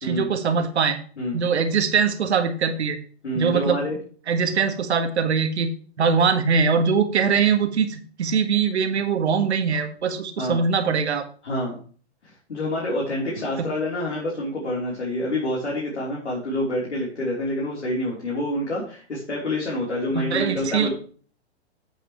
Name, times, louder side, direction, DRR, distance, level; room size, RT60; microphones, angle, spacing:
voice 1, 0.0-1.0 1.3-3.0 3.3-3.8 4.3-5.7 6.0-11.3 13.6-13.7 20.1-20.9, right 6 dB, 75° right, 8 dB, 1.7 m, -22 dB
voice 2, 1.2-1.5 3.2-4.0 10.4-10.6 11.4-11.8 12.2-20.9, left 1 dB, 90° left, -4 dB, 3.5 m, -27 dB
10.5 x 8.4 x 3.1 m, 0.42 s
hypercardioid pair, 120°, 34 cm